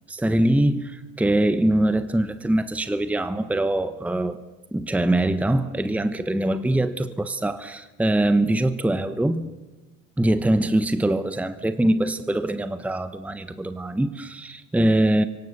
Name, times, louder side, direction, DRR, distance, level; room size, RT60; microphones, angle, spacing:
voice 1, 0.1-4.4 4.7-9.5 10.2-15.2, right 1 dB, 5° right, 1.1 m, -23 dB
29.5 x 24.5 x 6.8 m
hypercardioid pair, 80°, 41 cm